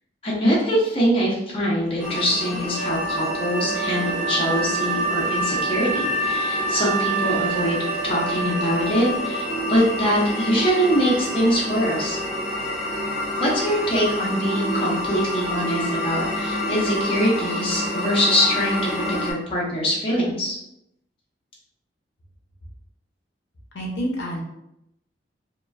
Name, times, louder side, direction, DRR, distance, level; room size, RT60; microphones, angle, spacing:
voice 1, 0.2-12.2 13.4-20.6, equal, 30° left, -6 dB, 0.7 m, -23 dB
sound 1, 2.0-19.3, left 1 dB, 5° right, 0.7 m, -28 dB
Wind instrument woodwind instrument, 2.7-9.8, right 5 dB, 85° right, 0.3 m, -28 dB
voice 2, 23.7-24.4, equal, 70° left, -2 dB, 0.6 m, -28 dB
2.9 x 2.3 x 2.2 m, 0.82 s
head